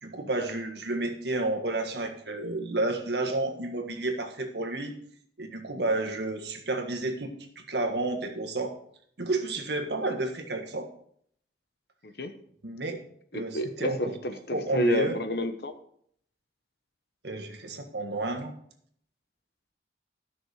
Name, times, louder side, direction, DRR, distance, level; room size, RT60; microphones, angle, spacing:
voice 1, 0.0-4.9 5.4-8.7 9.2-10.9 12.6-13.0 13.3-14.1 14.5-15.2 17.2-18.5, right 2 dB, 80° right, 5 dB, 1.6 m, -31 dB
voice 2, 13.3-15.7, equal, 65° left, 9 dB, 1.0 m, -29 dB
12.0 x 6.2 x 4.8 m, 0.65 s
head